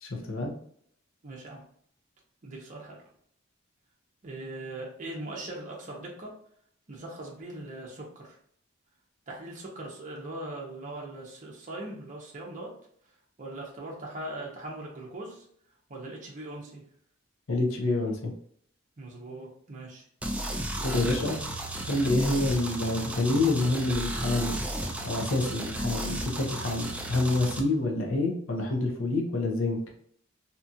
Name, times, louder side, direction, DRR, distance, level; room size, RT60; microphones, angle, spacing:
voice 1, 0.0-0.6 17.5-18.3 20.8-21.4 21.9-24.6 25.0-29.8, left 2 dB, 70° left, 0 dB, 0.7 m, -27 dB
voice 2, 1.2-1.7 2.4-3.1 4.2-6.3 6.9-8.4 9.3-12.7 13.4-15.4 15.9-16.9 19.0-20.1, right 2 dB, 40° right, -3 dB, 0.7 m, -40 dB
sound 1, 20.2-27.6, right 1 dB, 5° right, 0.3 m, -34 dB
2.8 x 2.3 x 2.7 m, 0.66 s
head